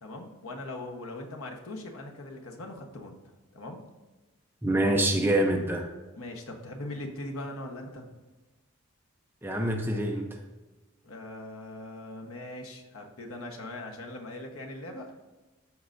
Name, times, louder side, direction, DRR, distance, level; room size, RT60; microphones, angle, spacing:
voice 1, 0.0-3.2 3.5-3.8 6.2-8.2 11.0-15.2, left 1 dB, 80° left, 2 dB, 1.1 m, -40 dB
voice 2, 4.6-5.9 9.4-10.4, right 1 dB, 10° right, 2 dB, 0.6 m, -26 dB
13.0 x 4.7 x 2.6 m, 1.2 s
head